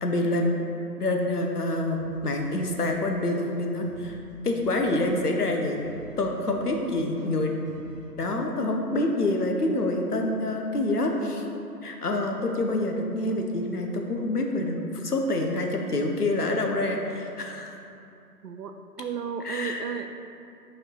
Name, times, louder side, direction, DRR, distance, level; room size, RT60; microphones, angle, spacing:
voice 1, 0.0-0.6 1.0-4.2 4.4-5.8 6.2-7.5 8.2-11.4 11.8-17.7 19.4-19.8, left 2 dB, 70° left, 2 dB, 0.9 m, -27 dB
sound 1, 1.9-8.0, right 1 dB, ahead, 1.3 m, -48 dB
voice 2, 18.4-20.2, right 7 dB, 80° right, 7 dB, 0.6 m, -34 dB
5.2 x 4.7 x 3.8 m, 2.6 s
figure-of-eight pair, 150°, 48 cm